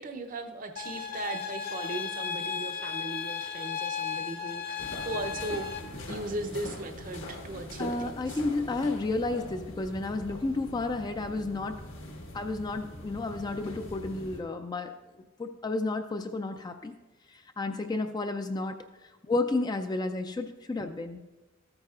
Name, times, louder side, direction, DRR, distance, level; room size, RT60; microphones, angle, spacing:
voice 1, 0.0-5.7 6.1-8.4, right 2 dB, 40° right, 7 dB, 0.6 m, -38 dB
sound 1, 0.8-5.8, left 6 dB, 45° left, 0.8 m, -35 dB
Walking in heels on stairs, 4.8-14.4, left 1 dB, 70° left, 1.4 m, -42 dB
voice 2, 7.8-11.8 12.3-14.9 15.4-16.9 17.3-18.8 19.2-21.2, left 2 dB, 20° left, 7 dB, 0.3 m, -31 dB
13.5 x 8.8 x 2.4 m, 1.1 s
head